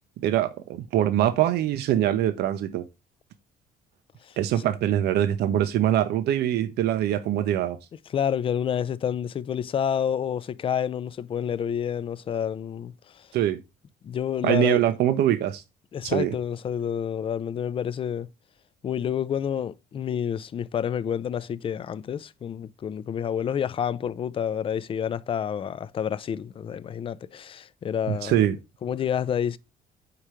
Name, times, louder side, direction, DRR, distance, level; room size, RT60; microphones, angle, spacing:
voice 1, 0.2-2.8 4.4-7.8 13.3-13.6 14.4-15.6 16.0-16.4 28.1-28.6, right 12 dB, 75° right, 0.7 m, -23 dB
voice 2, 8.1-13.3 14.0-14.8 15.9-18.3 18.8-28.4 28.8-29.6, left 8 dB, 30° left, 0.4 m, -29 dB
4.8 x 4.4 x 5.0 m
cardioid pair, 110°, 17 cm